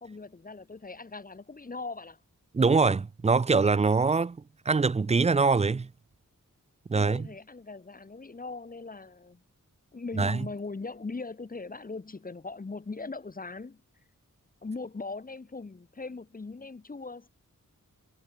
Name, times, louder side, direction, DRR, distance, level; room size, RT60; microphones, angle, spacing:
voice 1, 0.0-2.2 7.0-9.4 9.9-13.8 14.6-17.3, left 3 dB, 25° left, 0.7 m, -40 dB
voice 2, 2.5-4.4 4.7-5.9 6.9-7.3 10.2-10.5, right 4 dB, 20° right, 0.3 m, -23 dB
wide cardioid pair, 60°, 34 cm